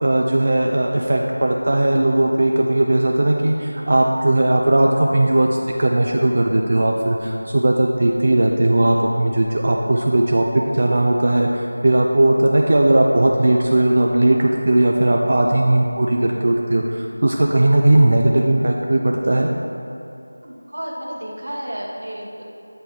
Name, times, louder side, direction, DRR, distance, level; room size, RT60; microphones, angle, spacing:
voice 1, 0.0-5.5 5.8-19.5, right 1 dB, 45° right, 0 dB, 0.3 m, -17 dB
voice 2, 20.4-22.4, equal, 75° right, -3 dB, 1.0 m, -31 dB
7.8 x 4.4 x 2.8 m, 2.6 s
figure-of-eight pair, 170°, 0 cm